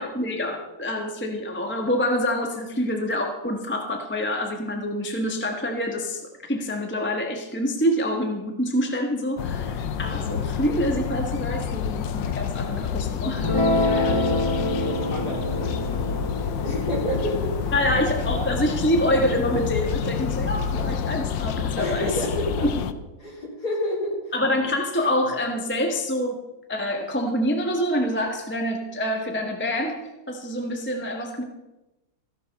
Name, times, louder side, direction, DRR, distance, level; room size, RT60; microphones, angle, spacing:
voice 1, 0.0-6.2 6.5-13.5 17.7-22.1 22.6-22.7 24.3-26.4 26.7-30.0 30.3-31.4, equal, 5° left, 3 dB, 1.0 m, -26 dB
sound 1, 9.4-22.9, left 7 dB, 80° left, 1.4 m, -28 dB
Guitar, 13.4-20.0, left 1 dB, 30° left, 0.6 m, -28 dB
voice 2, 13.8-17.7 21.8-22.9 23.2-24.3, equal, 55° left, -3 dB, 4.2 m, -30 dB
14.0 x 11.5 x 4.1 m, 1.0 s
omnidirectional pair, 2.0 m